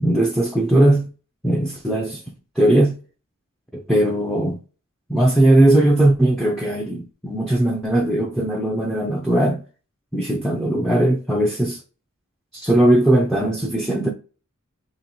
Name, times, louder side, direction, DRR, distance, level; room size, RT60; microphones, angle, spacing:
voice 1, 0.0-1.1 1.4-2.1 2.6-2.9 3.7-4.6 5.1-9.6 10.1-11.8 12.5-14.1, right 1 dB, ahead, 0.5 m, -18 dB
3.1 x 3.0 x 4.1 m
head